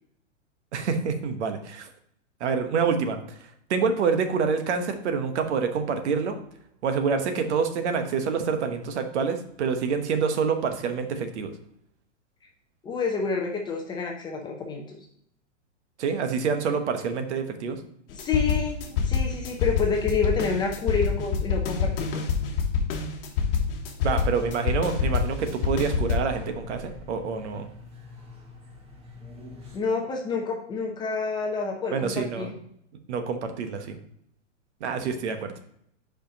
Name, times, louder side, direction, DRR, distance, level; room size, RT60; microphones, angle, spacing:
voice 1, 0.7-1.9 2.4-3.2 3.7-6.3 6.8-11.5 16.0-17.8 24.0-27.7 31.9-32.5 33.1-34.0 34.8-35.5, right 5 dB, 65° right, 7 dB, 1.1 m, -27 dB
voice 2, 12.8-15.0 18.1-22.3 29.7-32.5, left 4 dB, 10° left, 0 dB, 0.6 m, -28 dB
sound 1, 18.1-26.2, left 6 dB, 50° left, 1.2 m, -26 dB
sound 2, 24.0-29.8, left 1 dB, 15° right, 1.0 m, -43 dB
5.1 x 5.1 x 5.1 m, 0.71 s
hypercardioid pair, 145°, 37 cm